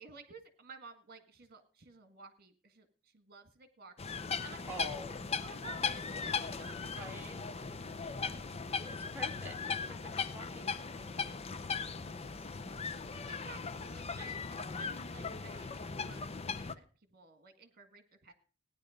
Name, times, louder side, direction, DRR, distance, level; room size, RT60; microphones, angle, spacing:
voice 1, 0.0-5.0 5.4-7.1 11.9-12.5 13.3-18.3, right 4 dB, 50° right, 1.9 m, -54 dB
sound 1, 4.0-16.7, left 5 dB, 30° left, 0.7 m, -38 dB
voice 2, 4.7-5.2 6.9-7.4 8.8-11.5, equal, 10° right, 2.5 m, -47 dB
17.0 x 10.0 x 5.1 m
head